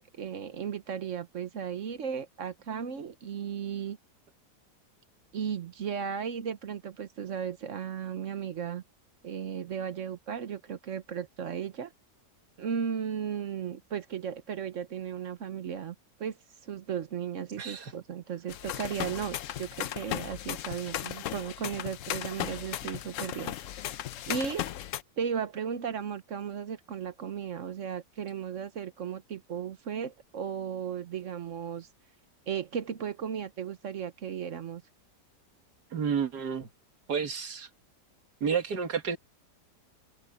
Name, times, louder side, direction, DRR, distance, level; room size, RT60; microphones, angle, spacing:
voice 1, 0.1-4.0 5.3-8.8 9.2-11.9 12.6-15.9 16.2-23.5 23.9-24.0 24.3-24.7 25.2-31.9 32.5-34.8, right 7 dB, 55° right, 1.1 m, -35 dB
voice 2, 17.6-17.9 35.9-36.7 37.1-37.7 38.4-39.2, right 6 dB, 70° right, 2.3 m, -30 dB
sound 1, 18.5-25.0, left 12 dB, 65° left, 0.8 m, -36 dB
open air
omnidirectional pair, 1.8 m